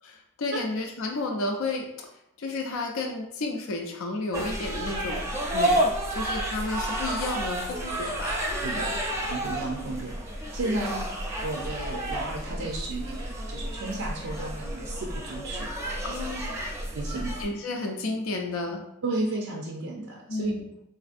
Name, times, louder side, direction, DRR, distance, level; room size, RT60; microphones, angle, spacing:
voice 1, 0.0-2.1 2.4-5.8 6.1-8.4 8.8-9.0 10.8-11.0 16.0-16.6 17.4-18.8 20.3-20.7, left 2 dB, 70° left, 2 dB, 0.4 m, -32 dB
sound 1, 4.3-17.5, right 1 dB, 15° right, 0.5 m, -31 dB
voice 2, 9.3-10.1 10.5-10.9 11.4-15.7 17.0-17.3 19.0-20.5, right 2 dB, 90° right, -1 dB, 0.5 m, -33 dB
4.0 x 2.5 x 2.5 m, 0.81 s
head